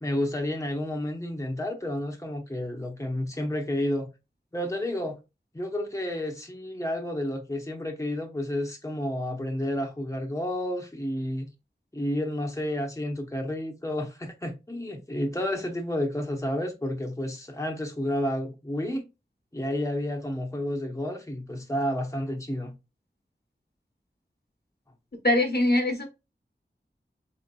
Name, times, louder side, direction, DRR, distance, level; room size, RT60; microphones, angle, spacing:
voice 1, 0.0-4.1 4.5-5.2 5.5-11.5 11.9-19.1 19.5-22.7, left 1 dB, 15° left, 0.9 m, -30 dB
voice 2, 25.2-26.1, left 1 dB, 60° left, 1.1 m, -22 dB
4.1 x 3.5 x 2.3 m
wide cardioid pair, 40°, 19 cm